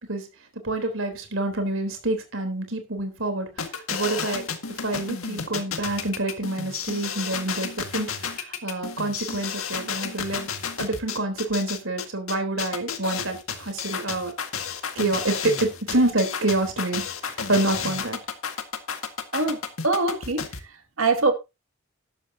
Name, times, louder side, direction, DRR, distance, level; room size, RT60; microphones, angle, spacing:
voice 1, 0.6-4.4 4.8-10.5 10.8-14.3 15.0-18.2, right 2 dB, 70° right, 3.7 m, -27 dB
sound 1, 3.6-20.6, left 6 dB, 90° left, 1.9 m, -32 dB
voice 2, 19.8-20.4 21.0-21.3, right 3 dB, 90° right, 2.3 m, -22 dB
12.5 x 12.0 x 2.8 m
head